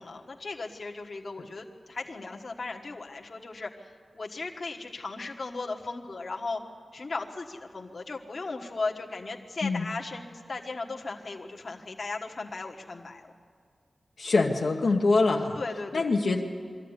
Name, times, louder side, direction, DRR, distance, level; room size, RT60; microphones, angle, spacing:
voice 1, 0.0-6.6 6.9-13.3 15.5-16.2, left 3 dB, 45° left, 1 dB, 1.4 m, -37 dB
voice 2, 14.2-15.6 15.9-16.4, left 3 dB, 65° left, 0 dB, 1.2 m, -24 dB
22.5 x 14.5 x 9.8 m, 2.1 s
wide cardioid pair, 140°, 0 cm